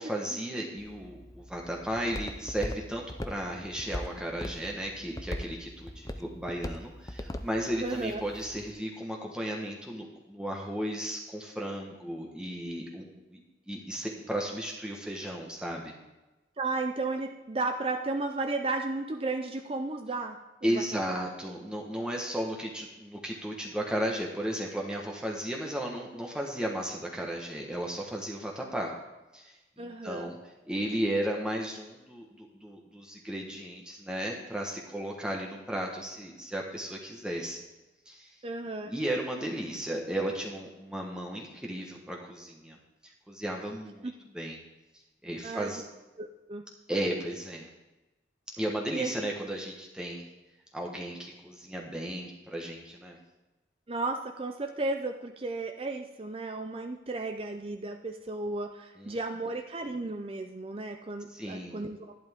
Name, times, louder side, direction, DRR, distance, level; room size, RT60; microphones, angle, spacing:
voice 1, 0.0-13.4 13.7-15.9 20.6-28.9 29.3-30.4 30.7-37.6 38.1-38.4 38.8-42.8 43.0-44.6 45.2-45.8 46.9-47.7 48.6-50.2 50.7-53.2 59.0-59.2 61.3-61.8, right 1 dB, 5° right, -1 dB, 1.2 m, -35 dB
Walk footsteps, 0.8-8.7, left 1 dB, 20° left, 0.5 m, -41 dB
voice 2, 7.8-8.2 16.6-21.3 29.8-30.3 38.4-38.9 44.0-44.1 45.4-45.7 46.2-46.6 48.9-49.3 53.9-62.1, right 3 dB, 30° right, 5 dB, 0.5 m, -34 dB
11.5 x 11.0 x 3.6 m, 1.1 s
head